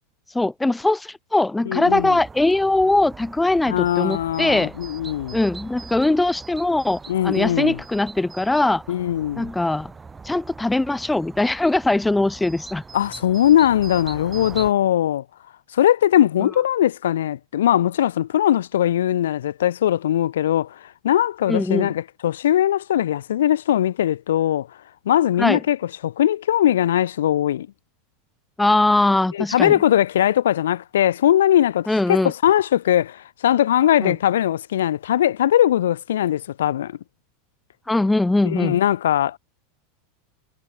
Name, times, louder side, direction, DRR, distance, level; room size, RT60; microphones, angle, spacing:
voice 1, 0.3-4.7 5.3-8.8 9.4-9.9 10.2-12.8 21.5-21.9 25.4-25.6 28.6-29.8 31.9-32.3 34.0-34.1 37.9-38.8, left 2 dB, 10° left, 0.7 m, -21 dB
voice 2, 1.7-2.2 3.7-5.4 7.1-7.8 8.9-9.5 12.9-15.2 15.7-20.7 21.0-24.7 25.1-25.8 26.0-27.7 29.3-37.0 38.4-39.4, left 11 dB, 80° left, 1.0 m, -20 dB
sound 1, 1.9-14.7, right 4 dB, 15° right, 7.5 m, -41 dB
hypercardioid pair, 105°, 0 cm